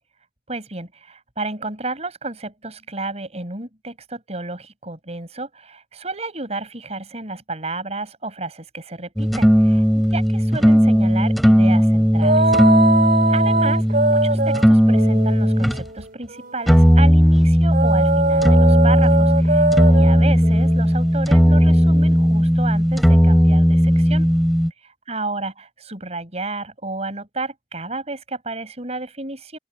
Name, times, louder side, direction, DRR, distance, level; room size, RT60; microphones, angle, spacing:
voice 1, 0.5-12.5 13.3-24.3 24.8-29.6, right 3 dB, 40° right, 5.2 m, -32 dB
sound 1, 9.2-15.8 16.7-24.7, equal, ahead, 4.4 m, -16 dB
sound 2, 12.2-16.9 17.7-22.4, right 2 dB, 55° right, 5.2 m, -22 dB
open air
head